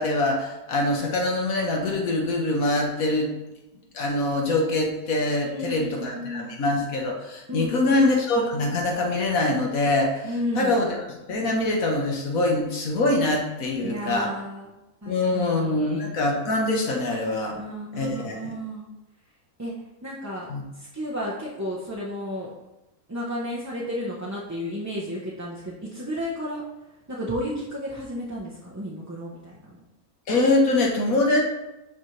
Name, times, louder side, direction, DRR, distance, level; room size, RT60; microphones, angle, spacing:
voice 1, 0.0-3.3 3.9-11.0 11.3-14.3 15.1-17.6 18.0-18.5 20.5-20.6 30.3-31.4, left 2 dB, 65° left, 0 dB, 1.6 m, -24 dB
voice 2, 5.4-6.5 7.5-8.0 10.2-10.9 13.8-14.8 15.0-16.1 17.5-18.9 19.6-19.7 20.0-20.5 20.7-22.5 23.1-26.6 27.1-29.6, equal, 15° right, -6 dB, 0.8 m, -33 dB
11.5 x 4.2 x 3.3 m, 0.99 s
omnidirectional pair, 1.6 m